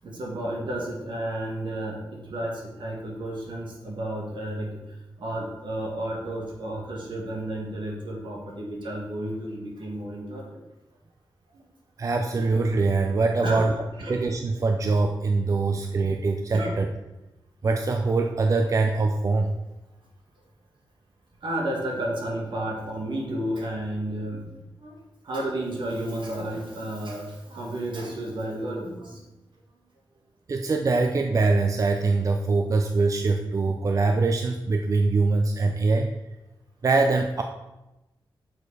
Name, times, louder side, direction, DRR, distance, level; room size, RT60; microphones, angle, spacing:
voice 1, 0.0-10.6 11.5-11.7 13.4-13.7 14.0-14.5 15.5-15.6 16.5-16.7 21.4-24.5 24.8-29.2, right 1 dB, 70° right, -1 dB, 1.7 m, -32 dB
voice 2, 12.0-13.7 14.1-16.9 17.6-19.5 30.5-36.1 36.8-37.4, right 3 dB, 40° right, 4 dB, 0.4 m, -23 dB
6.4 x 4.6 x 4.7 m, 1.0 s
wide cardioid pair, 140°, 8 cm